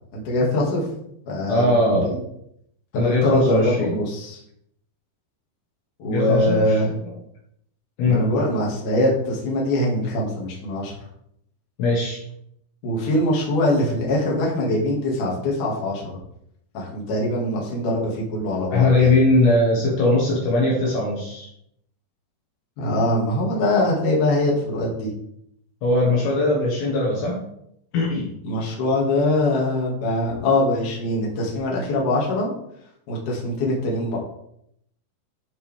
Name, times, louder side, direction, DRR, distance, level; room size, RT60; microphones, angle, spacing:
voice 1, 0.1-0.9 1.3-2.2 2.9-4.4 6.0-6.9 8.0-10.9 12.8-16.2 16.7-19.1 22.8-25.1 28.4-32.5 33.1-34.2, left 1 dB, 50° left, -3 dB, 3.2 m, -23 dB
voice 2, 1.5-2.2 2.9-3.9 6.1-6.8 8.0-8.3 11.8-12.2 18.7-21.5 25.8-27.4 27.9-28.3, left 2 dB, 65° left, -4 dB, 3.6 m, -20 dB
13.0 x 5.4 x 3.6 m, 0.74 s
omnidirectional pair, 5.9 m